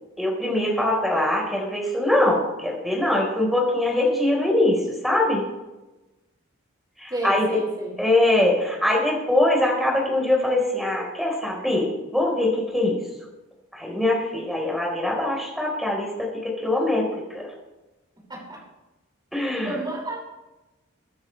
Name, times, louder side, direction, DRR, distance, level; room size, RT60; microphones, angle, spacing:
voice 1, 0.2-5.4 7.0-7.6 8.0-13.0 13.7-17.5 19.3-19.7, left 1 dB, ahead, -2 dB, 4.5 m, -23 dB
voice 2, 7.1-8.0 18.3-18.6 19.6-20.2, right 1 dB, 20° right, -3 dB, 5.9 m, -31 dB
23.5 x 10.0 x 3.4 m, 1.1 s
head